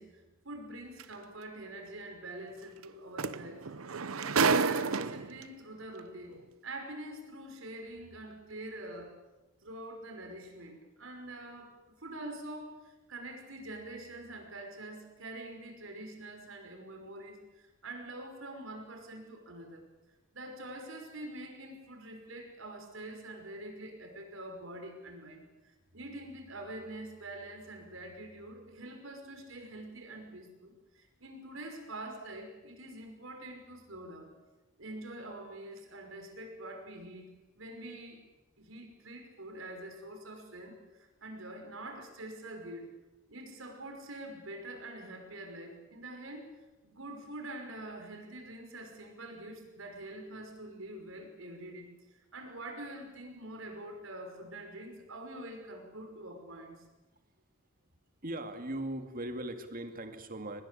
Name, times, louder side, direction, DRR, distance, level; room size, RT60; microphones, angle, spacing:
voice 1, 0.0-3.7 4.1-9.1 9.6-19.9 20.3-34.3 34.8-38.2 38.6-43.0 43.3-51.9 52.3-56.8, right 1 dB, 70° right, 4 dB, 5.5 m, -45 dB
sound 1, 1.0-1.1 2.8-2.9 3.2-5.4 6.4-6.5, right 5 dB, 90° right, 0.9 m, -29 dB
voice 2, 58.2-60.6, right 1 dB, 45° right, 7 dB, 2.2 m, -39 dB
24.0 x 20.0 x 8.5 m, 1.2 s
head